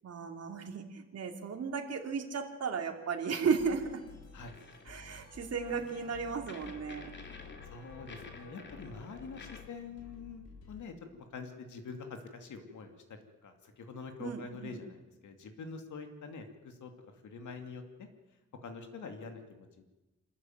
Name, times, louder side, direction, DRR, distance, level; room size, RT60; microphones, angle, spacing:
voice 1, 0.0-4.0 4.9-7.1 14.2-14.8, right 5 dB, 60° right, 3 dB, 2.8 m, -35 dB
sound 1, 3.5-10.8, left 4 dB, 60° left, 3.9 m, -53 dB
sound 2, 3.8-9.6, left 3 dB, 40° left, 2.9 m, -52 dB
voice 2, 7.7-16.9 17.2-17.8 18.6-19.8, left 4 dB, 85° left, 5 dB, 2.6 m, -45 dB
26.5 x 14.0 x 9.3 m, 1.1 s
wide cardioid pair, 155°, 29 cm